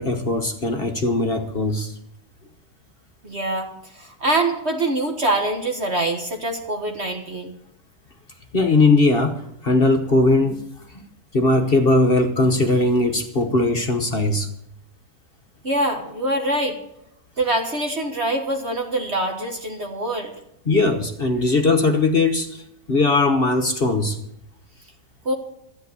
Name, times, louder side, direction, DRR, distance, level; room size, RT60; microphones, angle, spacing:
voice 1, 0.0-1.9 8.5-10.6 10.9-11.1 11.3-14.5 20.6-24.2, left 2 dB, 40° left, 5 dB, 1.2 m, -19 dB
voice 2, 3.2-7.5 15.6-16.8 17.4-20.3 25.3-25.4, right 1 dB, 45° right, 3 dB, 1.7 m, -24 dB
13.5 x 8.9 x 8.1 m, 0.79 s
omnidirectional pair, 1.7 m